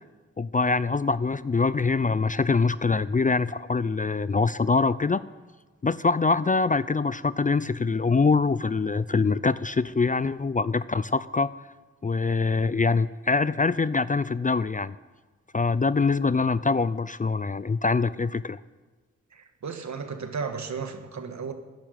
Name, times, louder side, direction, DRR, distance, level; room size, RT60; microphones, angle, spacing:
voice 1, 0.4-5.2 5.8-11.5 12.0-14.9 15.5-18.6, left 4 dB, 25° left, 17 dB, 0.5 m, -24 dB
voice 2, 19.3-21.5, right 5 dB, 60° right, 7 dB, 1.8 m, -34 dB
13.5 x 10.5 x 9.1 m, 1.3 s
cardioid pair, 50°, 32 cm